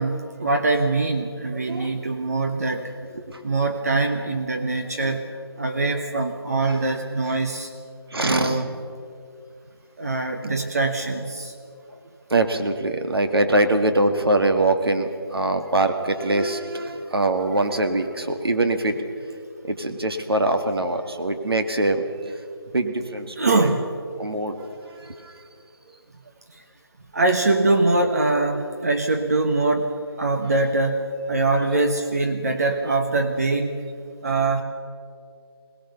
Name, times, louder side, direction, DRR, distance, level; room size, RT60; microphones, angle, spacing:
voice 1, 0.0-2.9 3.4-5.3 5.6-7.7 8.2-8.7 10.0-11.5 23.4-23.8 27.1-29.9 30.2-33.8 34.2-34.6, right 2 dB, 40° right, 4 dB, 1.3 m, -23 dB
voice 2, 1.5-1.9 3.1-3.4 4.8-5.2 6.6-6.8 8.1-8.6 12.3-19.1 19.6-22.4 22.7-23.7 24.2-25.4, right 2 dB, 65° right, 6 dB, 2.2 m, -23 dB
22.0 x 19.0 x 6.9 m, 2.4 s
figure-of-eight pair, 170°, 13 cm